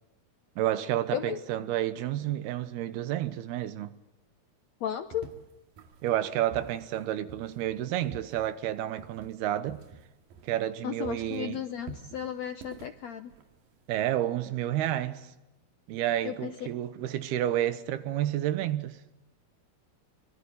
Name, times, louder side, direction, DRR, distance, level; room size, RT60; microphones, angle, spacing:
voice 1, 0.6-3.9 6.0-9.8 10.4-11.6 13.9-15.3 15.9-19.0, right 12 dB, 85° right, 3.2 m, -30 dB
voice 2, 1.1-1.4 4.8-5.3 10.8-13.3 16.2-16.7, left 10 dB, 75° left, 1.6 m, -34 dB
sound 1, 5.1-10.8 11.0-13.9, right 4 dB, 65° right, 3.5 m, -49 dB
25.5 x 25.0 x 8.4 m
omnidirectional pair, 4.5 m